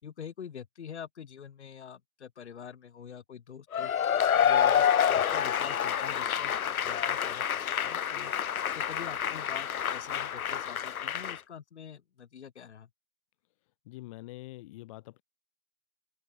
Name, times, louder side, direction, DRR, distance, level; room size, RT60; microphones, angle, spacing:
voice 1, 0.0-3.9 4.3-8.3 8.7-12.9, left 8 dB, 50° left, 4.6 m, -45 dB
Cheering / Applause / Crowd, 3.7-11.4, left 9 dB, 90° left, 0.8 m, -28 dB
voice 2, 13.8-15.2, left 18 dB, 25° left, 2.5 m, -45 dB
open air
hypercardioid pair, 160°, 42 cm